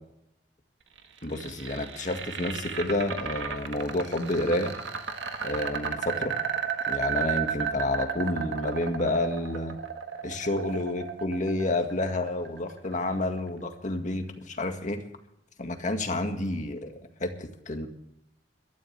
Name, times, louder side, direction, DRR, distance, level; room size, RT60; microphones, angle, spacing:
sound 1, 1.0-13.0, right 7 dB, 85° right, 1.8 m, -33 dB
voice 1, 1.2-4.7 5.4-6.4 6.9-9.8 10.2-15.0 15.6-17.9, left 1 dB, 45° left, 5 dB, 1.9 m, -29 dB
21.5 x 12.5 x 3.4 m, 0.78 s
head